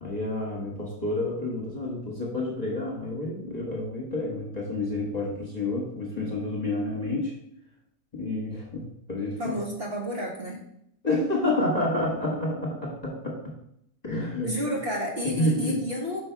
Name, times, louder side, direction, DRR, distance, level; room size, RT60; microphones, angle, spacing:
voice 1, 0.0-7.3 8.1-9.6 11.0-13.4 14.0-14.5 15.2-15.8, left 2 dB, 25° left, -4 dB, 1.5 m, -29 dB
voice 2, 9.4-10.6 14.4-16.2, equal, 40° right, -2 dB, 1.6 m, -31 dB
5.6 x 5.4 x 4.6 m, 0.74 s
omnidirectional pair, 1.7 m